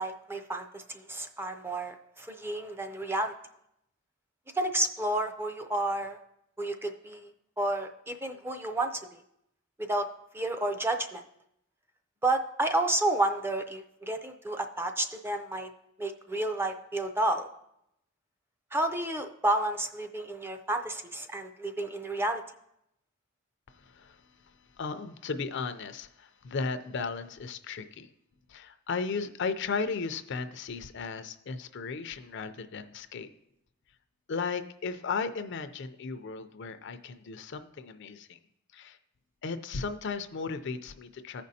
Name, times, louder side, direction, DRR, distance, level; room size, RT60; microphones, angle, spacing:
voice 1, 0.0-3.3 4.5-6.2 6.6-9.2 9.8-10.1 10.3-11.2 12.2-15.7 16.0-17.5 18.7-22.4, right 2 dB, 10° right, 7 dB, 0.4 m, -31 dB
voice 2, 23.7-28.1 28.5-33.3 34.3-38.4 38.7-39.0 39.4-41.4, left 4 dB, 60° left, 10 dB, 0.5 m, -35 dB
15.0 x 5.2 x 2.7 m, 0.79 s
head